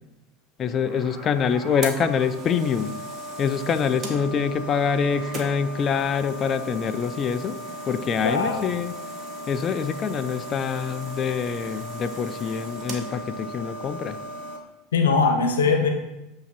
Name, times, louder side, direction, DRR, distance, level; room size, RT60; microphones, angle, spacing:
voice 1, 0.6-3.0 3.4-7.6 7.9-8.9 9.5-14.2, left 6 dB, 30° left, 11 dB, 0.4 m, -25 dB
sound 1, 0.6-14.6, right 1 dB, 30° right, 1.1 m, -37 dB
voice 2, 8.2-8.7 14.9-15.9, left 4 dB, 70° left, 4 dB, 0.9 m, -21 dB
8.1 x 2.8 x 4.2 m, 0.96 s
figure-of-eight pair, 75°, 0 cm